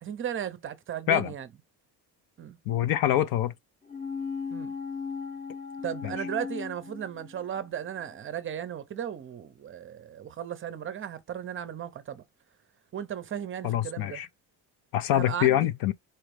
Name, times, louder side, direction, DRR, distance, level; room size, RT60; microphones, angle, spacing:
voice 1, 0.0-1.5 2.4-2.6 4.5-4.7 5.8-12.2 12.9-14.2 15.1-15.6, right 9 dB, 30° right, 0.6 m, -36 dB
voice 2, 2.7-3.5 6.0-6.1 13.6-14.3 14.9-15.9, left 12 dB, 60° left, 0.6 m, -25 dB
sound 1, 3.9-7.7 8.0-8.1, left 5 dB, 20° left, 0.8 m, -37 dB
4.5 x 3.5 x 3.2 m
cardioid pair, 160°, 40 cm